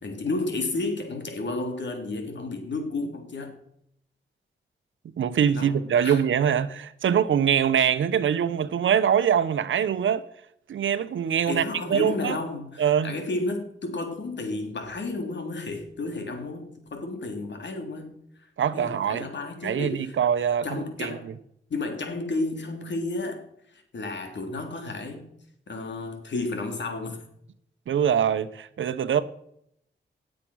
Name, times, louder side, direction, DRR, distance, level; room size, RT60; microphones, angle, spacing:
voice 1, 0.0-3.6 5.5-5.7 6.0-6.2 11.5-18.2 18.7-20.2 20.6-21.3 21.7-25.3 25.7-27.2, left 2 dB, 65° left, 5 dB, 3.4 m, -32 dB
voice 2, 5.2-10.2 10.7-11.6 11.9-12.4 12.8-13.2 18.6-19.3 19.6-21.2 27.9-29.2, right 8 dB, 80° right, 13 dB, 1.0 m, -23 dB
17.5 x 7.6 x 6.3 m, 0.73 s
cardioid pair, 50°, 20 cm